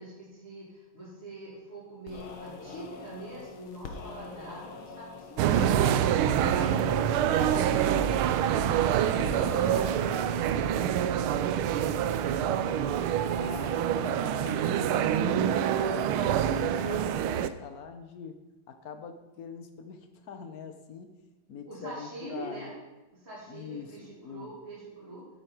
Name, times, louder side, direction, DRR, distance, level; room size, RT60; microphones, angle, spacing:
voice 1, 0.0-7.8 8.8-12.9 21.7-22.8 23.1-25.3, right 1 dB, 30° right, -11 dB, 3.4 m, -44 dB
sound 1, 2.1-10.4, left 4 dB, 75° left, 2.1 m, -43 dB
sound 2, 5.4-17.5, right 9 dB, 80° right, 1.4 m, -26 dB
voice 2, 6.7-7.7 9.3-9.7 13.3-18.4 18.7-21.2 21.5-22.7 23.5-24.5, left 5 dB, 55° left, 7 dB, 1.1 m, -43 dB
12.0 x 8.4 x 4.5 m, 1.1 s
omnidirectional pair, 2.4 m